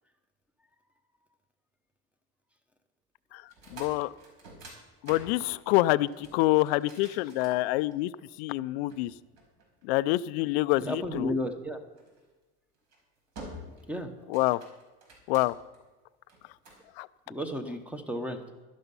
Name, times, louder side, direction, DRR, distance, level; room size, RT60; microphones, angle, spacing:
voice 1, 3.3-4.1 5.0-8.1 8.4-9.1 9.8-11.3 14.3-14.6 15.3-15.5 17.0-17.1, left 18 dB, 75° left, 14 dB, 0.5 m, -26 dB
sound 1, 3.4-8.2 8.9-10.2 12.0-12.2 12.7-13.0 13.4-13.9 14.2-15.8 16.3-16.9, right 1 dB, 60° right, 5.1 m, -48 dB
voice 2, 10.8-11.8 13.9-14.1 17.3-18.4, left 1 dB, 5° right, 7 dB, 0.9 m, -33 dB
12.0 x 11.5 x 5.5 m, 1.2 s
cardioid pair, 155°, 31 cm